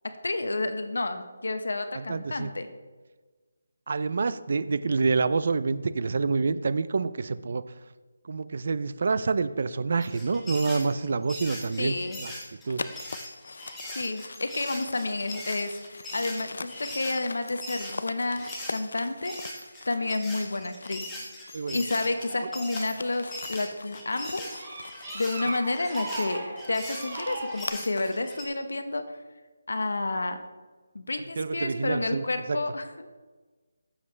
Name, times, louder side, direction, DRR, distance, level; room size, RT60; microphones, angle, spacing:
voice 1, 0.2-2.7 11.8-12.2 13.9-19.3 19.9-21.1 21.7-24.5 25.1-26.4 26.7-29.0 29.7-30.4 30.9-33.2, left 2 dB, 80° left, 8 dB, 1.1 m, -30 dB
voice 2, 1.9-2.5 3.9-7.6 8.2-12.3 12.7-12.8 21.5-21.8 31.4-32.6, right 4 dB, 40° right, 14 dB, 0.4 m, -27 dB
sound 1, 10.0-18.8 19.2-28.4, left 1 dB, 5° left, 1.2 m, -41 dB
sound 2, 12.7-21.1 21.4-28.3, left 3 dB, 55° left, 0.5 m, -42 dB
sound 3, 22.1-23.4 24.0-27.7, right 2 dB, 20° right, 2.2 m, -38 dB
14.5 x 7.4 x 3.3 m, 1.3 s
figure-of-eight pair, 175°, 0 cm